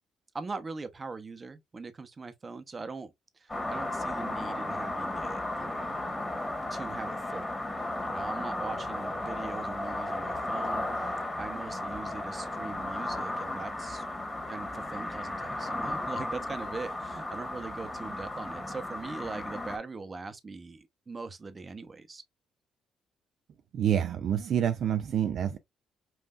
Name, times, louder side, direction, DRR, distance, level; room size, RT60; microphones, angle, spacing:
voice 1, 0.3-6.1 6.7-7.5 8.0-10.9 11.4-14.0 14.5-22.2, right 4 dB, 30° right, 0.8 m, -41 dB
sound 1, 3.5-19.8, left 1 dB, 15° left, 1.6 m, -35 dB
voice 2, 23.7-25.6, right 9 dB, 65° right, 0.5 m, -27 dB
5.5 x 2.6 x 2.4 m
cardioid pair, 90°, 0 cm